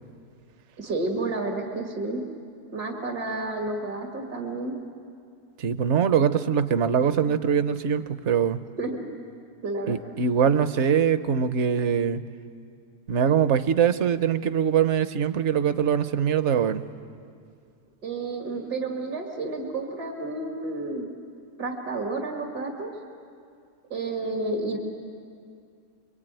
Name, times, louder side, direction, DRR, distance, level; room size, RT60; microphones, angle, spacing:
voice 1, 0.8-2.2 2.7-4.8 8.8-9.1 9.6-10.0 18.0-21.1 21.6-22.9 23.9-24.8, right 2 dB, 85° right, 1 dB, 2.8 m, -30 dB
voice 2, 5.6-8.6 9.9-12.2 13.1-16.8, right 7 dB, 55° right, 12 dB, 1.0 m, -23 dB
29.0 x 23.0 x 9.0 m, 2.3 s
omnidirectional pair, 1.6 m